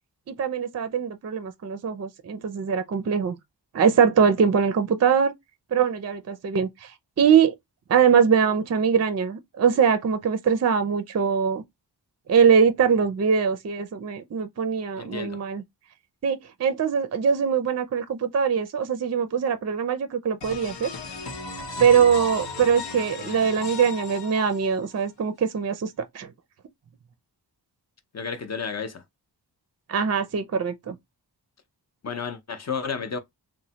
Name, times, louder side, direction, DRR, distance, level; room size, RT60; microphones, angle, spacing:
voice 1, 0.3-3.4 3.7-5.3 5.7-6.9 7.2-7.6 7.9-11.6 12.3-15.6 16.2-20.9 21.8-26.3 29.9-31.0, right 7 dB, 40° right, 0.4 m, -22 dB
voice 2, 15.0-15.4 21.9-22.0 28.1-29.0 32.0-33.2, left 5 dB, 40° left, 0.6 m, -32 dB
sound 1, 20.4-25.0, left 3 dB, 85° left, 0.9 m, -35 dB
3.1 x 2.1 x 2.8 m
wide cardioid pair, 95°, 42 cm